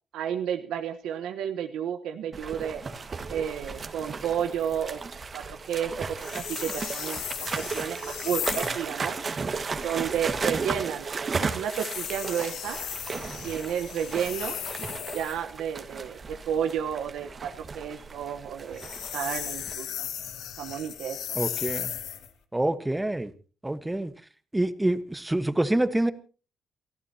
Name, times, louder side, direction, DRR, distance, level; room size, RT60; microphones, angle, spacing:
voice 1, 0.1-2.8 3.3-5.0 5.3-9.2 9.8-11.1 11.4-12.8 13.4-14.6 15.1-20.1 20.6-21.4, right 9 dB, 85° right, 6 dB, 1.1 m, -32 dB
sound 1, 2.3-19.7, right 4 dB, 40° right, 1.7 m, -35 dB
sound 2, 6.2-8.8 11.6-15.4 18.6-22.3, left 10 dB, 80° left, 1.7 m, -36 dB
voice 2, 21.4-21.9 22.5-23.3 23.6-24.1 24.5-26.1, right 1 dB, 10° right, 12 dB, 1.3 m, -26 dB
29.0 x 14.0 x 2.9 m, 0.36 s
cardioid pair, 90°, 0 cm